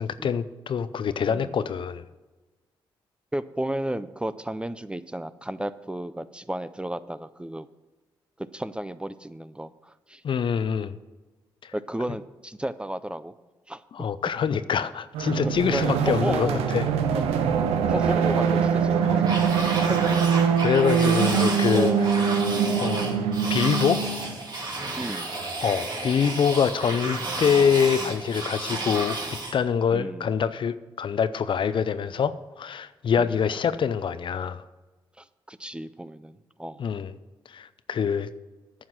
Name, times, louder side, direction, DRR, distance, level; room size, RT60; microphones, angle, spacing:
voice 1, 0.0-2.1 10.2-11.0 11.6-11.7 13.9-16.9 19.0-19.2 20.6-21.9 22.8-23.2 23.5-24.0 25.6-34.6 36.8-37.1 37.5-38.3, left 7 dB, 55° left, 14 dB, 0.5 m, -25 dB
voice 2, 3.3-7.7 8.4-10.2 11.7-13.3 13.7-14.1 15.4-17.2 17.9-20.0 21.7-22.1 22.4-22.8 25.0-25.3 29.9-30.3 33.2-33.3 35.2-36.8, right 1 dB, 10° right, 14 dB, 0.5 m, -33 dB
sound 1, 15.1-24.3, right 7 dB, 90° right, 0.6 m, -23 dB
sound 2, 19.2-29.6, right 2 dB, 45° right, 2.6 m, -32 dB
9.5 x 5.8 x 7.9 m, 1.2 s
supercardioid pair, 55°, 10 cm